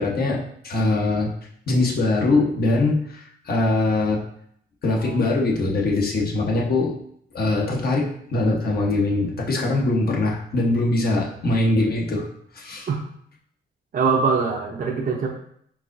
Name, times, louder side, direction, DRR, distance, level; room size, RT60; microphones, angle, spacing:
voice 1, 0.0-1.3 1.7-4.2 4.8-6.9 7.3-12.3 12.5-12.9, left 2 dB, 50° left, -1 dB, 1.1 m, -22 dB
voice 2, 13.9-15.3, right 5 dB, 45° right, 0 dB, 0.7 m, -23 dB
4.7 x 3.7 x 2.6 m, 0.66 s
cardioid pair, 90°, 20 cm